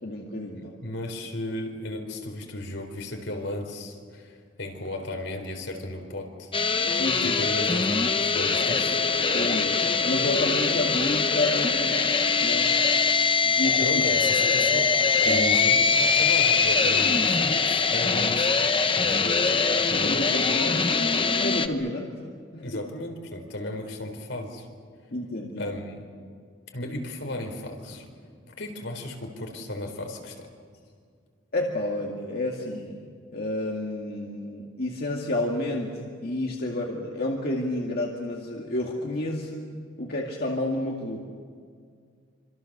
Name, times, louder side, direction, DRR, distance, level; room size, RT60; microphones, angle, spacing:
voice 1, 0.0-0.7 6.9-7.5 9.3-9.7 10.0-12.0 12.4-12.7 13.4-13.9 15.2-15.7 19.9-22.1 22.5-22.8 25.1-25.8 31.5-33.1 33.3-35.9 36.2-41.2, left 1 dB, 55° left, -1 dB, 2.3 m, -30 dB
voice 2, 0.5-6.5 7.2-9.0 13.8-19.9 22.6-24.7 25.6-26.1 26.7-28.1 28.6-30.5, left 1 dB, 75° left, 3 dB, 4.2 m, -35 dB
sound 1, 6.5-21.7, left 5 dB, 25° left, 1.0 m, -23 dB
27.0 x 26.5 x 6.8 m, 2.1 s
head